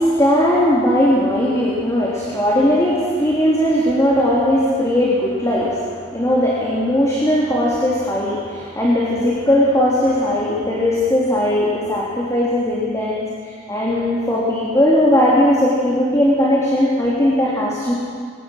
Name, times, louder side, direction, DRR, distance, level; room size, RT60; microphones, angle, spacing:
voice 1, 0.0-13.3 13.7-17.9, left 1 dB, 20° left, -5 dB, 3.1 m, -18 dB
22.5 x 19.0 x 6.5 m, 2.1 s
head